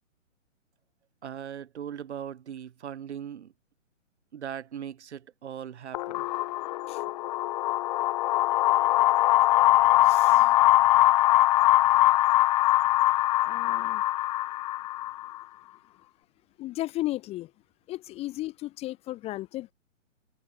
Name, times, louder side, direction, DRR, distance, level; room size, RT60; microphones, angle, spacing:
voice 1, 1.2-3.5 4.3-6.2, right 9 dB, 60° right, 4.0 m, -39 dB
sound 1, 5.9-15.4, left 16 dB, 35° left, 1.4 m, -22 dB
voice 2, 9.8-10.6 13.4-14.0 16.6-17.5 17.9-19.7, left 16 dB, 15° left, 1.2 m, -35 dB
hypercardioid pair, 145°, 38 cm